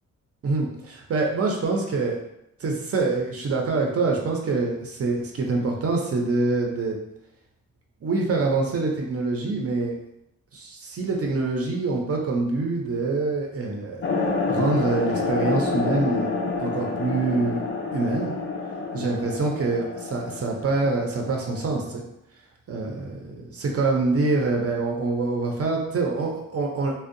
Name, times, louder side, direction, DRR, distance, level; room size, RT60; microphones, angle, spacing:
voice 1, 0.4-2.2 2.6-7.0 8.0-9.9 10.5-14.0 14.5-16.3 16.6-17.6 17.9-18.3 18.9-22.0 22.7-26.9, right 3 dB, 50° right, 1 dB, 0.5 m, -25 dB
sound 1, 14.0-21.9, left 3 dB, 40° left, 0.4 m, -28 dB
2.6 x 2.0 x 2.5 m, 0.81 s
wide cardioid pair, 110°, 31 cm